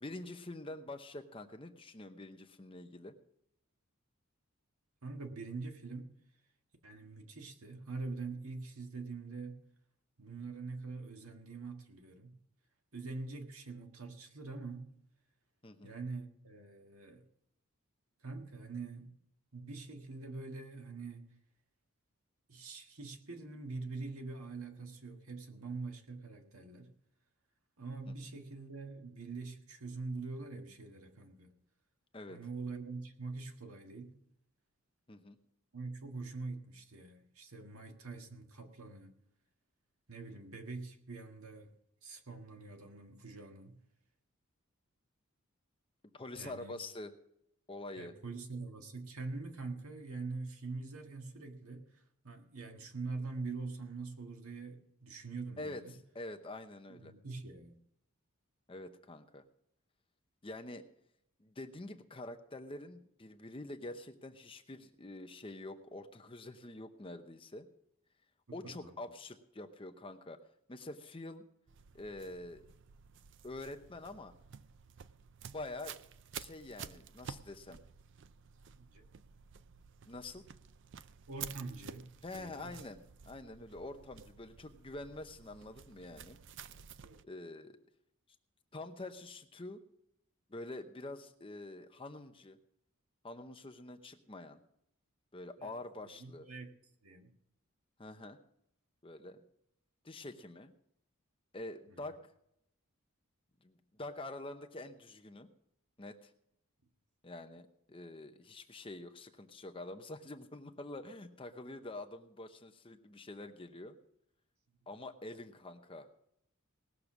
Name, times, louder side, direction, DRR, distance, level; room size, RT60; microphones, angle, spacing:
voice 1, 0.0-3.2 15.6-15.9 28.1-28.2 32.1-32.4 35.1-35.4 46.1-47.2 47.7-48.1 55.6-55.8 56.1-57.1 58.7-59.4 60.4-60.9 61.4-67.7 68.5-70.4 70.7-71.4 71.9-72.6 73.4-74.3 75.5-76.0 76.3-77.8 80.0-80.5 82.2-86.4 87.2-87.8 88.7-89.8 90.5-92.6 93.2-94.6 95.3-96.5 98.0-98.4 99.0-99.4 100.0-100.7 101.5-102.2 103.6-105.5 106.0-106.3 107.2-114.0 114.9-116.1, left 2 dB, 25° left, 0.8 m, -46 dB
voice 2, 5.0-6.1 6.8-9.6 10.2-12.4 12.9-14.9 15.8-17.3 18.2-19.1 19.5-21.3 22.5-26.9 27.8-31.5 32.3-34.2 35.7-39.1 40.1-41.7 42.0-43.8 46.4-46.8 48.0-55.9 56.9-57.8 68.5-69.0 78.7-79.1 81.3-82.7 87.0-87.2 95.6-95.8 96.2-96.7 97.0-97.3 101.9-102.0, right 3 dB, 75° right, 1.7 m, -44 dB
sound 1, 71.7-87.2, right 8 dB, 55° right, 0.5 m, -51 dB
19.0 x 6.8 x 6.0 m
head